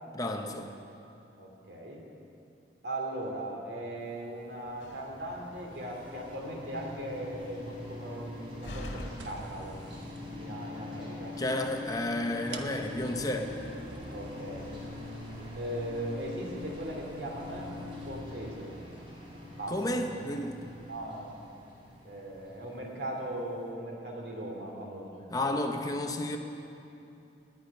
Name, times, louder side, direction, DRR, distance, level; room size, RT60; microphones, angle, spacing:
voice 1, 0.1-0.7 11.4-13.5 19.7-20.6 25.3-26.4, left 1 dB, 20° left, 4 dB, 0.8 m, -32 dB
voice 2, 1.4-2.0 2.8-9.8 10.4-11.4 14.1-14.7 15.5-17.7 18.1-18.7 19.6-19.8 20.9-21.3 22.0-25.2, right 1 dB, 70° right, 0 dB, 2.7 m, -38 dB
sound 1, 4.3-23.3, left 2 dB, 30° right, 3.3 m, -43 dB
Slam, 4.6-10.3, equal, 80° left, 1.8 m, -47 dB
sound 2, 9.2-10.2 11.5-11.6 12.5-18.2, right 3 dB, 85° right, 1.0 m, -50 dB
19.0 x 10.0 x 5.5 m, 2.7 s
head